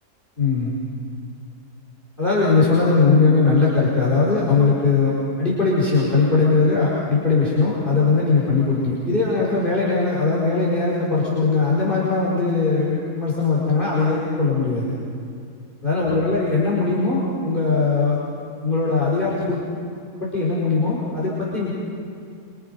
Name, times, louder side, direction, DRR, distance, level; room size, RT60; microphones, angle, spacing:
voice 1, 0.4-0.7 2.2-14.9 15.8-18.2 18.6-19.6 20.2-21.7, left 4 dB, 30° left, -6 dB, 5.0 m, -20 dB
27.5 x 25.5 x 5.4 m, 2.4 s
omnidirectional pair, 1.7 m